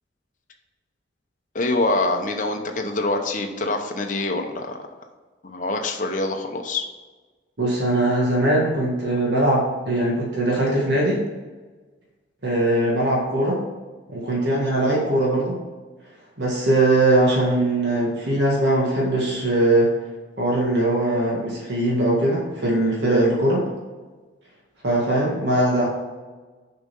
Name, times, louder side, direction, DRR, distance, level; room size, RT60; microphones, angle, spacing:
voice 1, 1.5-4.9 5.4-6.8, left 2 dB, 45° left, 3 dB, 0.9 m, -25 dB
voice 2, 7.6-11.2 12.4-13.6 14.1-15.6 16.4-19.9 20.4-23.7 24.8-25.9, right 1 dB, 65° right, -4 dB, 1.9 m, -21 dB
6.7 x 5.5 x 5.4 m, 1.3 s
head